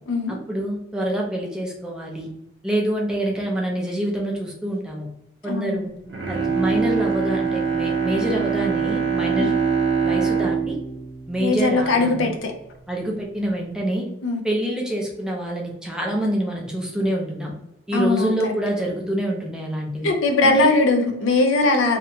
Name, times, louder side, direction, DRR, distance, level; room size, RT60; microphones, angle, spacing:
voice 1, 0.3-2.3 2.6-5.1 5.4-5.9 6.3-9.5 10.0-10.8 11.3-12.4 12.9-14.0 14.4-17.5 17.9-20.1 20.4-20.7, right 1 dB, 5° right, -2 dB, 0.5 m, -26 dB
voice 2, 5.4-5.9 9.3-9.5 11.4-12.5 14.2-14.4 17.9-18.5 20.0-22.0, left 3 dB, 90° left, 4 dB, 0.4 m, -20 dB
Bowed string instrument, 6.0-12.3 12.7-12.8, right 5 dB, 60° right, 0.5 m, -24 dB
2.8 x 2.2 x 2.6 m, 0.82 s
head